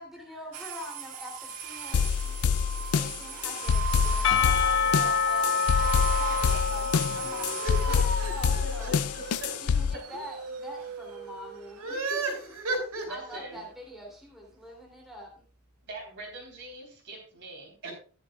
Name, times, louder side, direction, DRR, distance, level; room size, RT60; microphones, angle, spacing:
voice 1, 0.0-6.9 7.2-8.9 9.6-12.2 13.1-15.4, equal, ahead, -1 dB, 2.9 m, -44 dB
sound 1, 0.5-12.2, right 5 dB, 90° right, 1.7 m, -38 dB
sound 2, 1.9-9.9, left 6 dB, 85° left, 0.4 m, -27 dB
Percussion / Church bell, 4.2-9.5, left 6 dB, 60° left, 0.8 m, -28 dB
voice 2, 7.1-9.5 10.1-10.2 11.8-13.3 17.8-17.9, right 2 dB, 70° right, 0 dB, 5.4 m, -35 dB
voice 3, 8.6-9.0 9.4-9.5 13.1-13.7 15.8-17.9, right 1 dB, 55° right, 1 dB, 3.6 m, -41 dB
13.5 x 10.5 x 2.3 m, 0.39 s
head